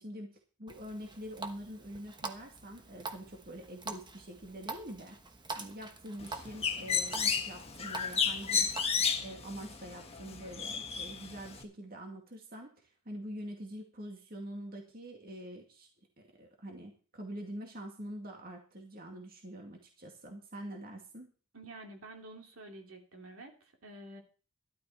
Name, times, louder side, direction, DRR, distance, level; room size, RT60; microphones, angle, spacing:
voice 1, 0.0-5.2 5.6-8.7 9.2-15.9 16.2-21.3, equal, 45° right, 2 dB, 2.2 m, -45 dB
Water tap faucet, 0.7-8.8, right 3 dB, 20° right, 1.1 m, -45 dB
Bird, 6.2-11.6, left 6 dB, 30° left, 1.5 m, -33 dB
voice 2, 21.5-24.2, right 2 dB, 70° right, 3 dB, 2.8 m, -49 dB
12.5 x 12.5 x 4.3 m, 0.37 s
head